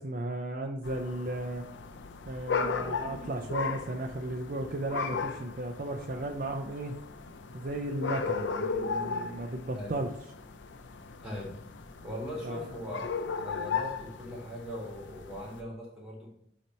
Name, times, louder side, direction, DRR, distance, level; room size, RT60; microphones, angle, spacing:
voice 1, 0.0-1.6 2.3-7.0 7.5-10.1 12.4-12.6, right 1 dB, 50° right, 4 dB, 0.5 m, -35 dB
sound 1, 0.8-15.6, left 5 dB, 85° left, 0.5 m, -36 dB
voice 2, 11.2-11.5 12.0-16.3, left 1 dB, 5° right, -3 dB, 1.8 m, -40 dB
8.3 x 2.9 x 4.3 m, 0.70 s
head